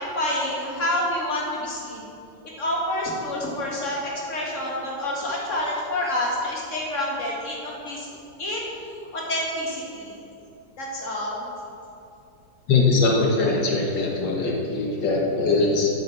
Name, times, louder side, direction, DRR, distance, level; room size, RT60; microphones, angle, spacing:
voice 1, 0.0-2.1 2.6-8.1 8.4-8.7 9.1-10.2 10.8-11.4, left 1 dB, 45° left, -4 dB, 2.4 m, -28 dB
voice 2, 12.7-15.9, left 3 dB, 75° left, -1 dB, 2.0 m, -21 dB
8.7 x 7.0 x 7.3 m, 2.7 s
omnidirectional pair, 1.9 m